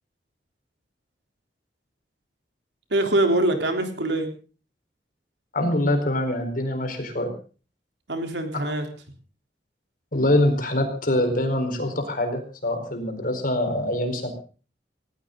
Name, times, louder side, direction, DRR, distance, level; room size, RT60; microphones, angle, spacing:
voice 1, 2.9-4.3 8.1-8.9, right 1 dB, 80° right, 5 dB, 3.6 m, -23 dB
voice 2, 5.5-7.3 10.1-14.3, left 1 dB, 50° left, 5 dB, 4.6 m, -24 dB
18.5 x 18.0 x 3.9 m, 0.38 s
head